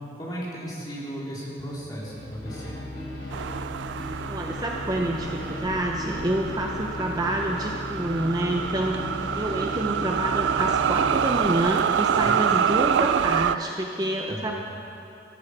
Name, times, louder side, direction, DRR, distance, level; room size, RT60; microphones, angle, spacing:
voice 1, 0.2-2.7 12.1-12.3 14.3-14.5, equal, 20° left, -6 dB, 3.1 m, -35 dB
sound 1, 2.0-11.5, left 1 dB, 85° left, 3.6 m, -36 dB
sound 2, 3.3-13.6, right 8 dB, 85° right, 0.3 m, -27 dB
voice 2, 4.3-9.0 9.4-14.5, right 1 dB, 20° right, 1 dB, 0.7 m, -27 dB
14.5 x 14.0 x 4.8 m, 2.8 s
head